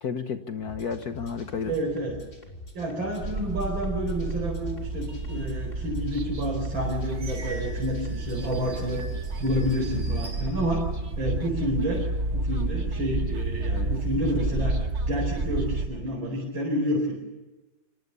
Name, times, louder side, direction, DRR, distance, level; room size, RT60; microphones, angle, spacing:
voice 1, 0.0-1.7, left 6 dB, 55° left, 8 dB, 1.6 m, -32 dB
sound 1, 0.6-9.9, left 1 dB, 25° left, 4.1 m, -45 dB
voice 2, 1.6-2.2 2.7-9.0 9.4-10.8 11.2-12.0 12.3-14.8 15.1-17.1, equal, 90° right, -1 dB, 5.5 m, -29 dB
sound 2, 3.2-15.9, right 2 dB, 40° right, 1.7 m, -30 dB
sound 3, 5.8-5.9 6.5-11.2 11.7-12.3, right 2 dB, 65° right, 4.0 m, -47 dB
26.0 x 21.0 x 6.9 m, 1.1 s
omnidirectional pair, 2.1 m